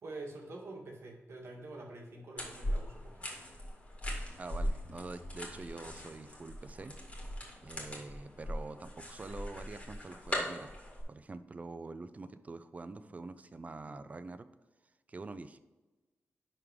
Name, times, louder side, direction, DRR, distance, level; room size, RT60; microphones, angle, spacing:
voice 1, 0.0-3.4, right 2 dB, 70° right, -1 dB, 1.7 m, -46 dB
sound 1, 2.4-11.0, equal, 25° left, 2.0 m, -40 dB
sound 2, 4.3-7.2, left 6 dB, 55° left, 0.6 m, -60 dB
voice 2, 4.4-6.9 7.6-10.7 11.1-14.5 15.1-15.6, right 3 dB, 30° right, 11 dB, 0.5 m, -45 dB
11.0 x 3.7 x 4.9 m, 1.2 s
wide cardioid pair, 145°, 5 cm